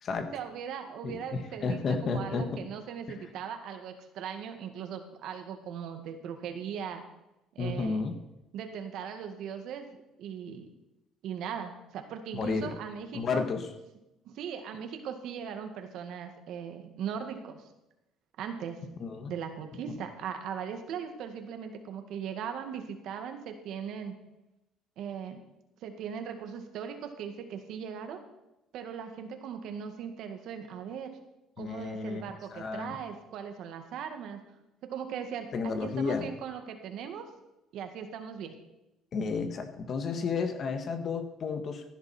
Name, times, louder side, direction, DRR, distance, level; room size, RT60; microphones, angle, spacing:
voice 1, 0.3-7.0 7.6-8.0 8.5-9.9 10.2-10.7 11.2-13.4 14.2-17.6 18.4-18.8 19.3-24.1 25.0-25.4 25.8-28.2 28.7-31.1 31.6-34.4 34.9-37.3 37.7-38.6, right 7 dB, 70° right, 6 dB, 2.1 m, -39 dB
voice 2, 1.0-2.6 7.6-8.1 12.3-12.7 13.1-13.7 19.0-19.3 31.6-32.2 32.5-33.0 35.5-36.3 39.1-41.8, left 4 dB, 45° left, 7 dB, 1.6 m, -32 dB
15.5 x 11.0 x 4.5 m, 0.93 s
cardioid pair, 115°, 0 cm